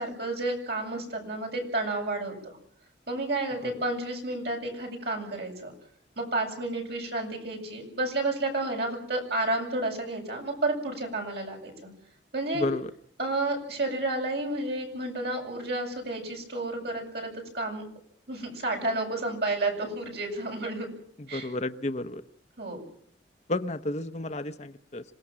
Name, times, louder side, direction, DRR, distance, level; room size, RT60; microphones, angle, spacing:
voice 1, 0.0-2.6 3.1-5.7 6.2-11.9 12.3-12.7 13.2-17.8 18.3-20.9 21.3-21.5 22.6-22.8, right 2 dB, 60° right, 1 dB, 8.0 m, -31 dB
voice 2, 12.5-12.9 21.3-22.2 23.5-25.0, left 2 dB, 40° left, 10 dB, 0.9 m, -31 dB
27.0 x 18.0 x 7.5 m, 0.67 s
head